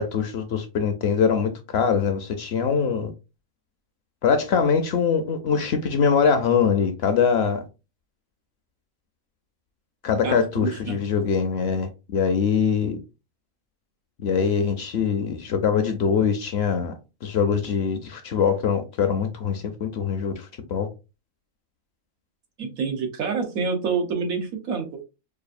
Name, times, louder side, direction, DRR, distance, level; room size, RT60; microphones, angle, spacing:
voice 1, 0.0-3.1 4.2-7.6 10.0-13.0 14.2-20.9, left 6 dB, 60° left, 0.7 m, -23 dB
voice 2, 10.2-11.0 22.6-25.0, right 5 dB, 90° right, 1.4 m, -27 dB
4.8 x 2.5 x 2.5 m
omnidirectional pair, 1.4 m